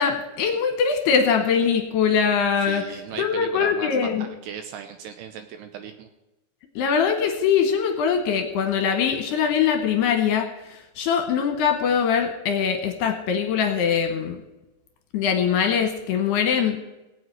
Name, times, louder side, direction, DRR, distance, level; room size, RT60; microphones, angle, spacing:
voice 1, 0.0-2.8 3.2-4.3 6.8-14.4 15.1-16.8, left 7 dB, 75° left, 6 dB, 2.7 m, -22 dB
voice 2, 2.6-6.1, right 7 dB, 75° right, 8 dB, 2.6 m, -37 dB
17.0 x 7.9 x 9.0 m, 1.0 s
omnidirectional pair, 5.5 m